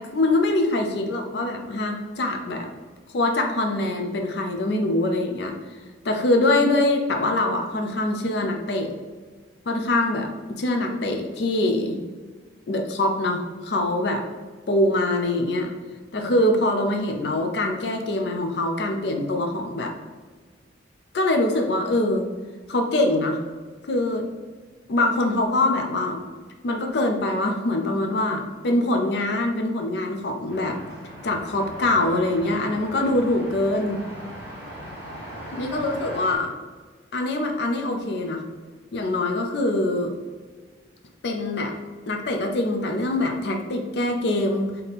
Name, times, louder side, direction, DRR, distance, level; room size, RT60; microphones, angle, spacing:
voice 1, 0.0-2.7 3.1-5.5 6.0-8.9 9.7-12.0 12.7-14.2 14.7-15.7 16.1-19.9 21.1-22.3 22.7-23.4 23.9-24.3 24.9-26.2 26.6-30.8 31.2-34.0 35.5-36.5 37.1-38.4 38.9-40.1 41.2-41.8 42.1-44.7, left 2 dB, 60° left, 3 dB, 0.4 m, -24 dB
sound 1, 30.5-36.4, equal, 10° right, 1.4 m, -39 dB
3.4 x 2.8 x 4.0 m, 1.5 s
head